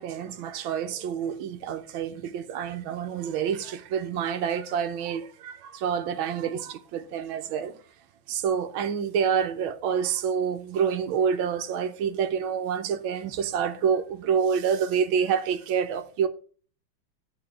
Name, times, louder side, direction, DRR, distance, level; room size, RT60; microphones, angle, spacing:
voice 1, 0.0-7.7 8.3-16.3, right 7 dB, 75° right, 1.6 m, -27 dB
11.0 x 4.1 x 6.9 m
omnidirectional pair, 2.3 m